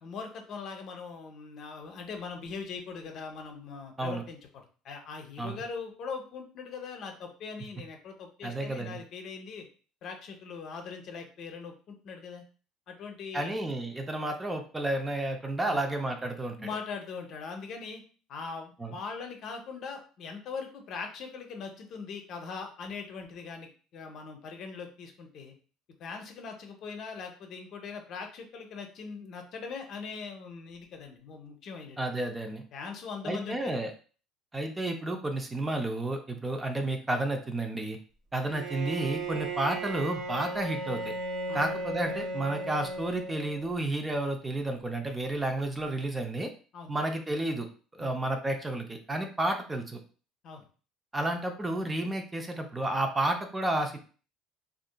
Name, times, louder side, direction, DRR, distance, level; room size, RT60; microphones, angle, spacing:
voice 1, 0.0-9.7 10.0-12.4 12.9-13.5 15.6-15.8 16.6-18.0 18.3-25.5 26.0-32.0 32.7-33.8 38.3-38.4 41.5-41.6 46.7-46.9 48.0-48.1 50.4-50.6, left 5 dB, 55° left, 4 dB, 0.6 m, -41 dB
voice 2, 8.4-9.0 13.3-16.6 18.8-19.0 32.0-32.6 33.2-33.9 34.5-38.0 38.3-41.1 41.5-46.5 46.9-47.7 47.9-50.0 51.1-54.0, right 1 dB, 15° right, 4 dB, 0.5 m, -31 dB
Bowed string instrument, 38.4-43.9, right 2 dB, 55° right, 1.0 m, -36 dB
2.7 x 2.4 x 2.2 m, 0.38 s
supercardioid pair, 90°, 0 cm